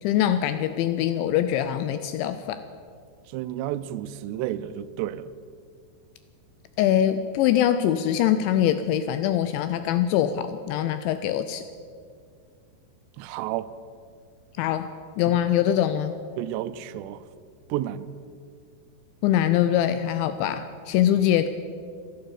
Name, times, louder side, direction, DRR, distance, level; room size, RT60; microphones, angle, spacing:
voice 1, 0.0-2.6 6.8-11.6 14.6-14.9 15.2-16.1 19.2-21.5, left 11 dB, 85° left, 10 dB, 2.7 m, -23 dB
voice 2, 3.3-5.3 13.2-13.7 15.3-15.4 16.4-17.2 17.7-18.1, right 13 dB, 90° right, 12 dB, 2.4 m, -31 dB
14.5 x 11.5 x 7.7 m, 2.2 s
omnidirectional pair, 5.7 m